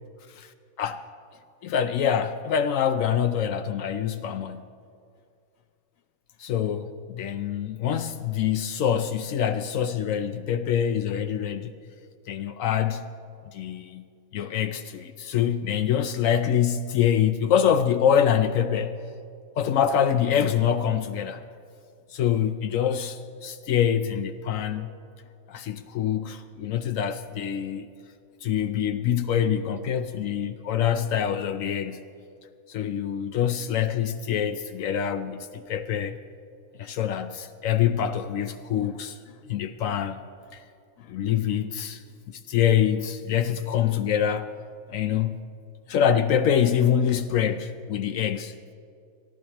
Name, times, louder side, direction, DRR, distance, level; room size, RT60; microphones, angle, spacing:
voice 1, 1.6-4.7 6.4-11.7 12.3-13.0 13.5-14.1 14.3-19.0 19.6-21.4 22.1-24.9 25.5-27.9 28.4-32.0 32.7-36.2 36.8-39.2 39.5-40.2 40.5-40.6 41.0-42.0 42.3-44.5 44.9-45.4 45.9-48.5, left 9 dB, 70° left, 0.9 m, -25 dB
22.5 x 13.5 x 2.9 m
omnidirectional pair, 1.5 m